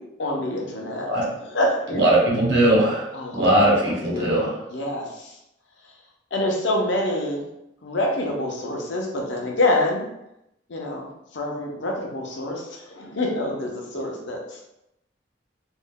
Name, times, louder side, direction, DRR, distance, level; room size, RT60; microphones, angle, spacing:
voice 1, 0.2-1.1 1.4-2.1 3.1-3.5 3.9-5.4 6.3-7.5 7.8-10.0 10.7-14.6, left 1 dB, 75° left, 0 dB, 0.6 m, -26 dB
voice 2, 1.9-4.5, right 1 dB, 65° right, -4 dB, 0.9 m, -20 dB
2.5 x 2.1 x 3.6 m, 0.85 s
head